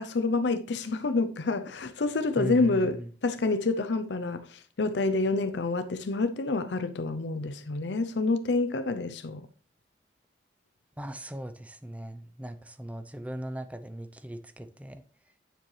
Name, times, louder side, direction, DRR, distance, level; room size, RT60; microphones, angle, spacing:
voice 1, 0.0-9.4, left 3 dB, 80° left, 0.6 m, -28 dB
voice 2, 2.4-3.1 11.0-15.0, right 1 dB, 10° right, 0.6 m, -38 dB
9.0 x 7.3 x 3.2 m
head